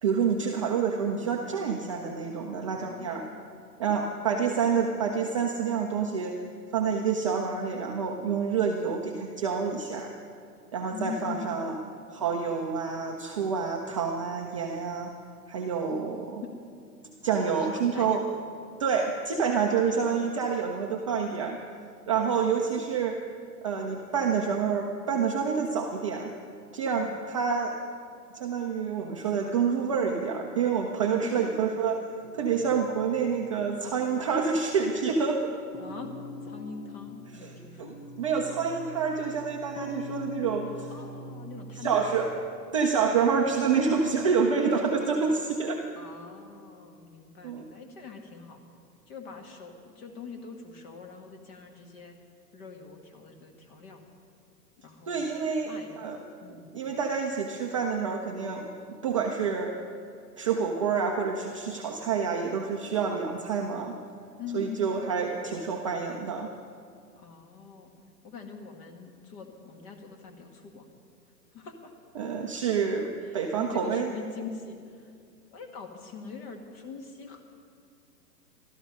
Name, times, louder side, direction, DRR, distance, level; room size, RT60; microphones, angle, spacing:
voice 1, 0.0-3.2 3.8-6.4 6.7-10.1 10.7-11.7 12.1-15.1 15.5-16.4 17.2-18.2 18.8-21.6 22.1-23.2 23.6-26.3 26.7-27.8 28.3-32.1 32.3-35.5 37.8-40.9 41.8-42.3 42.7-45.8 47.4-47.7 55.1-55.7 56.0-56.2 56.7-59.7 60.4-63.9 64.5-66.5 72.2-74.1, right 6 dB, 20° right, 1 dB, 0.4 m, -28 dB
voice 2, 2.5-3.7 10.9-11.8 16.4-16.5 17.3-18.2 22.3-22.7 26.9-27.1 31.2-31.6 35.8-36.1 36.4-38.1 40.9-42.1 46.0-48.6 49.1-52.2 52.5-54.0 54.8-55.2 55.7-56.8 64.4-65.0 67.2-67.9 68.2-70.8 71.5-71.9 73.2-75.1 75.5-77.4, left 5 dB, 35° left, 4 dB, 1.9 m, -43 dB
Large Indonesian Gong, 32.2-34.7 35.0-35.3 35.7-44.3 44.7-45.7, left 1 dB, 55° left, 1.9 m, -44 dB
16.0 x 12.5 x 5.4 m, 2.4 s
hypercardioid pair, 130°, 50 cm